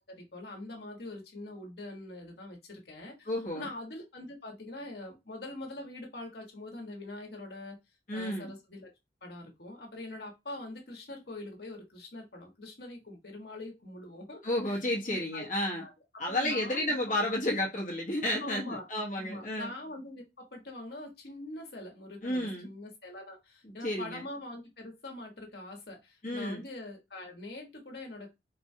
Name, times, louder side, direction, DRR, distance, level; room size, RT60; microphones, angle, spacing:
voice 1, 0.0-3.3 3.5-7.8 8.1-8.9 9.2-14.4 14.7-15.5 15.8-15.9 16.3-17.0 18.2-18.9 19.2-28.3, left 2 dB, 60° left, 1.2 m, -43 dB
voice 2, 3.3-3.7 8.1-8.5 14.4-15.8 16.2-19.7 22.2-22.7 23.6-24.2 26.2-26.7, left 1 dB, 45° left, 1.0 m, -32 dB
4.1 x 2.3 x 2.7 m
head